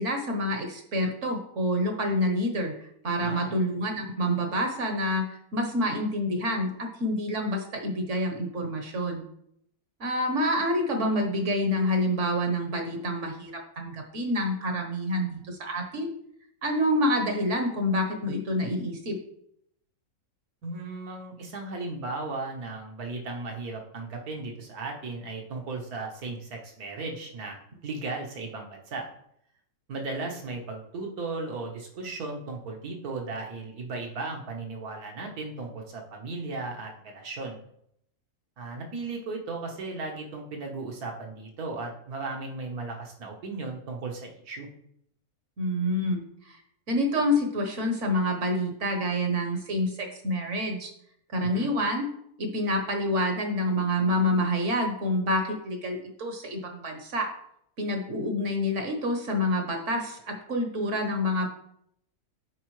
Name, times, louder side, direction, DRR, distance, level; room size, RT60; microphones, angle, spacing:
voice 1, 0.0-9.2 10.0-16.1 16.6-19.2 45.6-46.6 46.9-50.9 51.3-52.1 52.4-57.3 57.8-61.5, left 1 dB, 55° right, 3 dB, 1.3 m, -27 dB
voice 2, 3.2-3.6 20.6-29.1 29.9-37.6 38.6-44.7 51.4-51.7, right 3 dB, 75° right, 1 dB, 1.7 m, -36 dB
8.0 x 4.7 x 3.2 m, 0.72 s
omnidirectional pair, 1.6 m